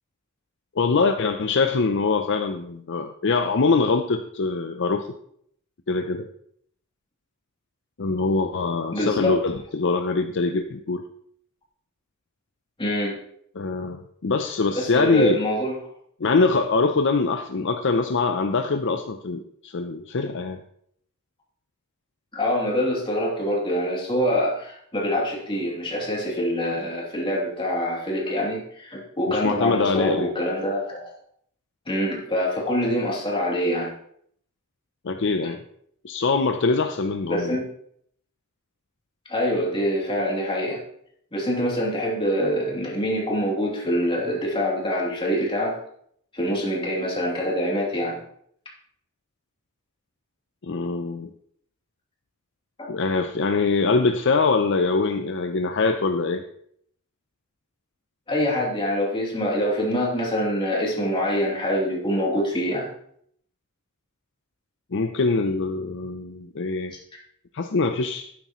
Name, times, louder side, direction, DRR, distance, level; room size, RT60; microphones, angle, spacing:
voice 1, 0.8-5.1 5.9-6.3 8.0-11.0 13.6-15.4 16.2-20.6 29.3-30.3 35.0-35.6 36.0-37.5 50.6-51.3 52.9-56.4 64.9-66.9 67.5-68.3, left 4 dB, 60° left, 6 dB, 0.6 m, -23 dB
voice 2, 8.9-9.3 12.8-13.2 14.7-15.7 22.3-31.1 31.9-33.9 37.3-37.7 39.3-40.8 41.3-45.8 46.3-48.2 52.8-52.9 58.3-62.9, equal, 25° left, -3 dB, 2.9 m, -25 dB
12.0 x 9.6 x 3.1 m, 0.68 s
head